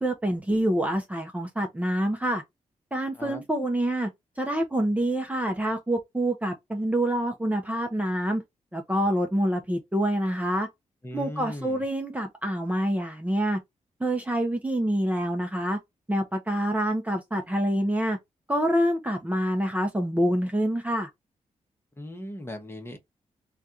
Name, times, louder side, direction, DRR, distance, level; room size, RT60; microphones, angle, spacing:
voice 1, 0.0-2.4 2.9-4.1 4.4-8.4 8.7-10.7 11.1-13.6 14.0-15.8 16.1-18.2 18.5-21.1, right 1 dB, 10° right, 0.8 m, -26 dB
voice 2, 11.0-11.8 22.0-23.0, left 1 dB, 20° left, 1.1 m, -38 dB
3.2 x 2.4 x 2.6 m
cardioid pair, 65°, 13 cm